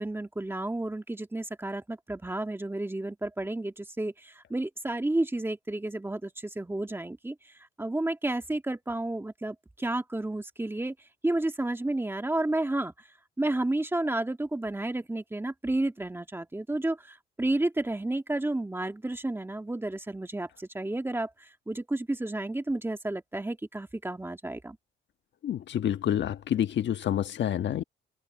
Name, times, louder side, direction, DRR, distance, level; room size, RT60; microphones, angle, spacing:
voice 1, 0.0-7.5 7.8-10.9 11.2-12.9 13.4-24.8, right 2 dB, 10° right, 1.8 m, -31 dB
voice 2, 25.4-27.8, left 10 dB, 65° left, 1.4 m, -28 dB
cardioid pair, 90°, 20 cm